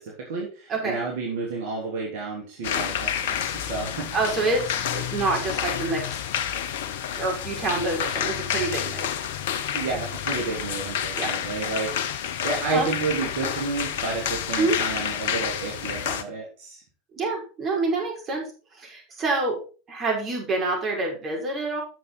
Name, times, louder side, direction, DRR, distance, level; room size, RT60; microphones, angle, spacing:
voice 1, 0.3-4.1 9.7-11.9 12.4-16.8, right 4 dB, 65° right, -1 dB, 2.8 m, -31 dB
sound 1, 2.6-16.2, left 9 dB, 65° left, 0.9 m, -29 dB
voice 2, 4.1-6.2 7.2-9.2 11.1-11.3 12.7-12.9 14.6-14.8 17.1-18.4 18.8-19.6 19.9-21.8, right 3 dB, 35° right, 0 dB, 5.6 m, -27 dB
10.5 x 7.0 x 4.1 m, 0.35 s
hypercardioid pair, 90°, 0 cm